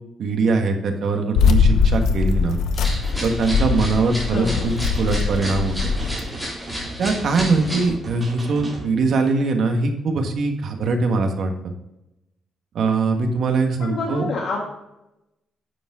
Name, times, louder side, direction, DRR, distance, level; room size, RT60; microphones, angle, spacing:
voice 1, 0.2-2.6 3.2-5.9 7.0-11.7 12.7-14.2, right 3 dB, 55° right, 4 dB, 1.5 m, -22 dB
sound 1, 1.4-6.2, left 5 dB, 85° left, 0.9 m, -21 dB
sound 2, 2.7-7.9, equal, ahead, 3.7 m, -32 dB
sound 3, 3.4-8.9, right 2 dB, 25° right, 2.6 m, -36 dB
voice 2, 4.3-4.7 13.8-14.7, left 3 dB, 60° left, -1 dB, 1.6 m, -28 dB
9.9 x 7.2 x 3.7 m, 0.92 s
cardioid pair, 165°, 0 cm